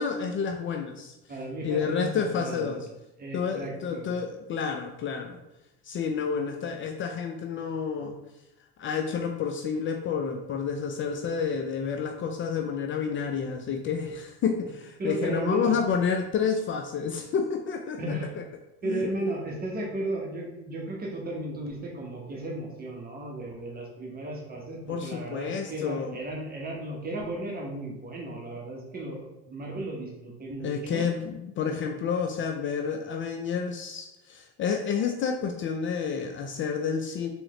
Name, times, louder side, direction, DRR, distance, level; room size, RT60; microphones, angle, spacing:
voice 1, 0.0-1.1 1.6-2.8 3.3-5.4 5.9-8.2 8.8-18.4 18.8-19.1 24.9-26.1 30.6-37.3, left 6 dB, 40° left, 4 dB, 0.4 m, -30 dB
voice 2, 1.3-2.8 3.2-4.1 15.0-15.7 18.0-18.3 18.8-31.1, right 1 dB, 30° right, -1 dB, 1.2 m, -35 dB
3.5 x 3.1 x 3.1 m, 0.91 s
hypercardioid pair, 80°, 33 cm